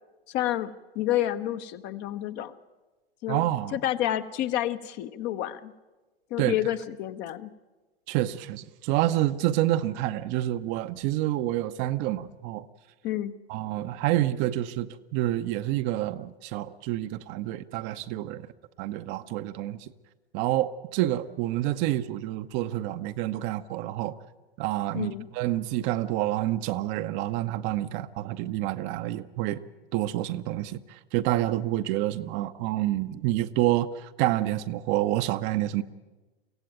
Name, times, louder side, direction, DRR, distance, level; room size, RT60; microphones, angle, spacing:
voice 1, 0.3-2.5 3.2-3.5 3.7-5.7 6.3-7.5 13.0-13.3 24.9-25.3, left 13 dB, 35° left, 0.9 m, -29 dB
voice 2, 3.3-3.8 6.4-6.6 8.1-12.7 13.5-18.5 18.8-19.9 20.3-24.2 24.6-29.6 29.9-35.8, right 14 dB, 35° right, 0.8 m, -28 dB
23.5 x 16.5 x 9.1 m
figure-of-eight pair, 95°, 31 cm